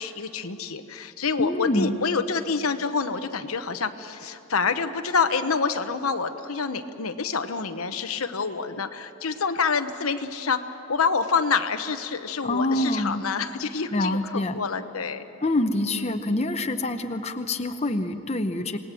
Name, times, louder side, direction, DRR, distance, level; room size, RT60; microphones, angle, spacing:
voice 1, 0.0-15.2 15.9-16.2, left 5 dB, 90° left, 9 dB, 1.0 m, -27 dB
voice 2, 1.4-2.0 12.4-13.2 13.9-14.6 15.4-18.8, left 1 dB, 30° left, 7 dB, 0.8 m, -26 dB
27.0 x 19.5 x 7.6 m, 2.8 s
head